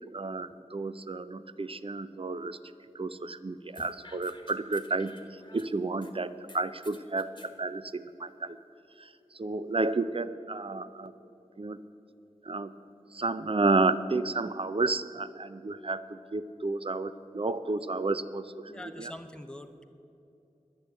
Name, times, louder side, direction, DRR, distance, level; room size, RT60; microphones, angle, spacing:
voice 1, 0.0-2.6 2.9-5.1 5.5-8.6 9.0-9.1 9.3-11.1 11.6-11.8 12.5-12.7 13.1-18.7 19.0-19.1, right 3 dB, 45° right, 13 dB, 0.5 m, -31 dB
sound 1, 3.7-6.1 6.5-7.5, left 2 dB, 35° left, 1.3 m, -53 dB
voice 2, 18.7-19.8, left 1 dB, 5° left, 7 dB, 0.9 m, -44 dB
10.5 x 10.5 x 8.2 m, 2.8 s
wide cardioid pair, 50°, 13 cm